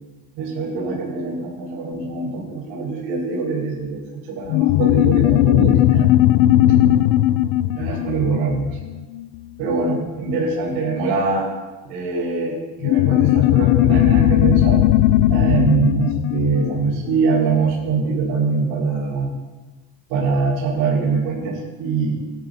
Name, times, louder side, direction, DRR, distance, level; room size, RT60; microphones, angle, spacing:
voice 1, 0.4-6.1 7.8-8.8 9.6-11.5 11.8-14.8 15.3-19.3 20.1-22.3, right 4 dB, 85° right, -5 dB, 5.1 m, -23 dB
sound 1, 4.5-9.5 12.8-17.7, left 14 dB, 85° left, 0.6 m, -17 dB
20.0 x 13.5 x 2.7 m, 1.2 s
cardioid pair, 175°, 43 cm